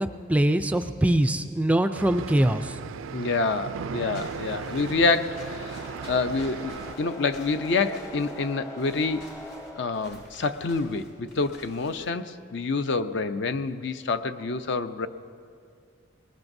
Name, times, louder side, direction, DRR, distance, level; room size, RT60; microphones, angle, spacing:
voice 1, 0.0-2.8, right 1 dB, 5° right, 9 dB, 0.3 m, -23 dB
sound 1, 1.9-7.0, right 6 dB, 80° right, 0.4 m, -37 dB
voice 2, 3.1-9.2 9.8-15.1, left 3 dB, 60° left, 10 dB, 0.6 m, -27 dB
sound 2, 3.8-10.8, left 1 dB, 15° left, 0.7 m, -44 dB
Walk footsteps / Squeak, 4.1-12.1, left 1 dB, 90° left, 4.3 m, -50 dB
20.5 x 20.0 x 2.7 m, 2.2 s
head